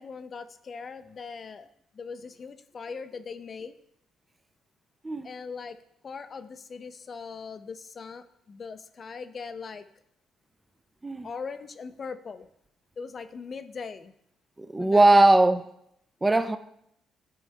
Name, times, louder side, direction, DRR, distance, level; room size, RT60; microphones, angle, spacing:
voice 1, 0.0-1.7 2.0-3.7 5.2-5.8 6.0-9.8 11.2-12.5 13.0-14.1 14.8-15.2, left 5 dB, 45° left, 0.5 m, -40 dB
voice 2, 14.6-15.7 16.2-16.6, right 2 dB, 15° right, 0.5 m, -20 dB
10.5 x 4.6 x 3.4 m
supercardioid pair, 70°, 0 cm